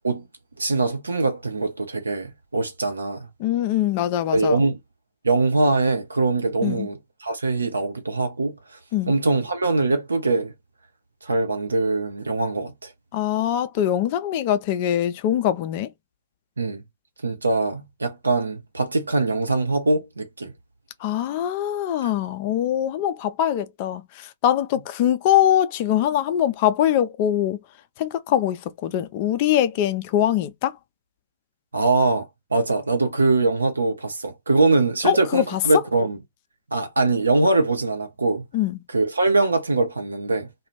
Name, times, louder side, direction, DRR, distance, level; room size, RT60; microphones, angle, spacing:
voice 1, 0.6-3.2 4.3-4.8 5.2-8.5 9.1-10.5 11.2-12.9 16.6-16.8 17.2-20.5 31.7-36.2 36.7-38.4 38.9-40.5, right 3 dB, 80° right, 0.9 m, -22 dB
voice 2, 3.4-4.6 6.6-6.9 8.9-9.1 13.1-15.9 21.0-27.6 28.0-30.8 35.0-35.6 38.5-38.8, left 11 dB, 40° left, 0.5 m, -23 dB
2.4 x 2.3 x 3.1 m
figure-of-eight pair, 110°, 0 cm